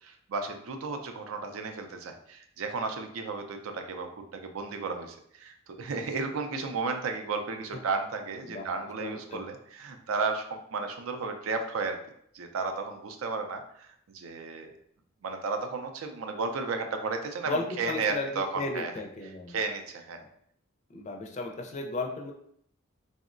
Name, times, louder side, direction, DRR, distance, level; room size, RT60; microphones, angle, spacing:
voice 1, 0.0-12.0 12.3-14.7 15.2-18.9 19.5-20.2, right 4 dB, 85° right, 6 dB, 0.4 m, -33 dB
voice 2, 8.4-9.4 17.5-19.6 20.9-22.3, left 3 dB, 35° left, 2 dB, 0.4 m, -35 dB
3.5 x 2.0 x 2.5 m, 0.69 s
head